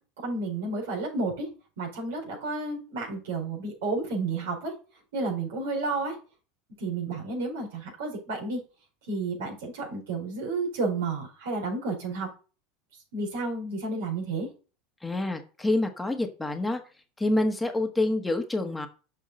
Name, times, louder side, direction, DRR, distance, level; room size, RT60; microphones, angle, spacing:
voice 1, 0.2-1.5 1.8-4.8 5.1-6.1 6.8-8.6 9.1-12.3 13.1-14.5, right 3 dB, 80° right, -1 dB, 4.7 m, -31 dB
voice 2, 15.0-16.8 17.2-18.9, left 2 dB, 10° left, 4 dB, 1.4 m, -27 dB
7.5 x 5.5 x 4.3 m, 0.35 s
hypercardioid pair, 95°, 0 cm